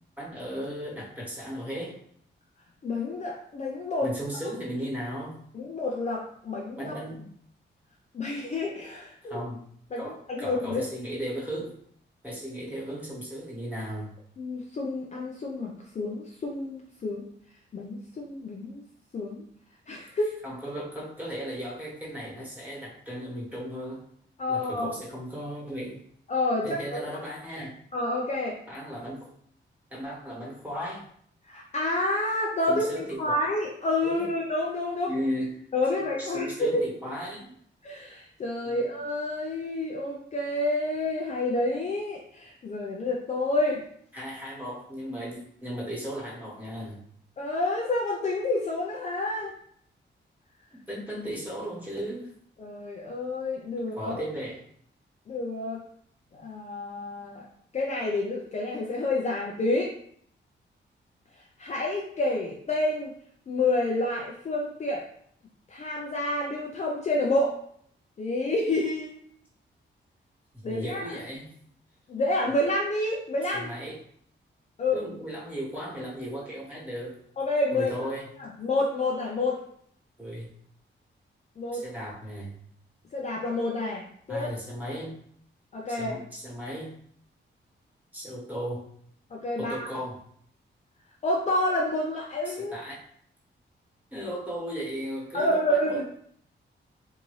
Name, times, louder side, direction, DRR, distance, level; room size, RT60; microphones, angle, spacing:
voice 1, 0.2-2.0 4.0-5.4 6.8-7.3 9.2-9.6 10.0-11.7 12.2-14.1 20.4-24.1 24.5-26.0 26.6-27.7 28.7-29.3 29.9-31.0 32.7-33.2 34.0-34.3 35.1-35.5 36.2-37.5 38.6-38.8 44.1-47.0 50.9-52.3 53.8-54.6 70.5-71.5 73.5-74.0 74.9-77.2 77.7-78.3 80.2-80.5 81.7-82.5 84.3-85.1 85.9-86.9 88.1-88.8 89.6-90.2 92.4-93.0 94.1-96.0, equal, 10° right, -6 dB, 1.3 m, -36 dB
voice 2, 2.8-4.1 5.5-7.0 8.1-9.4 9.9-10.8 14.4-17.2 17.7-18.8 19.1-19.4 19.9-20.4 24.4-24.9 26.3-27.0 27.9-28.6 31.5-35.1 35.7-36.8 37.8-43.8 47.4-49.5 52.6-54.1 55.3-55.8 56.3-57.5 57.7-59.9 61.6-63.1 63.5-65.0 65.7-67.6 68.2-69.2 70.6-71.1 72.1-73.7 74.8-75.0 77.4-77.9 78.4-79.6 81.6-81.8 83.1-84.5 85.7-86.2 89.3-89.9 91.2-92.8 95.3-96.0, left 2 dB, 35° left, -2 dB, 0.4 m, -29 dB
3.5 x 2.6 x 3.1 m, 0.64 s
wide cardioid pair, 150°, 20 cm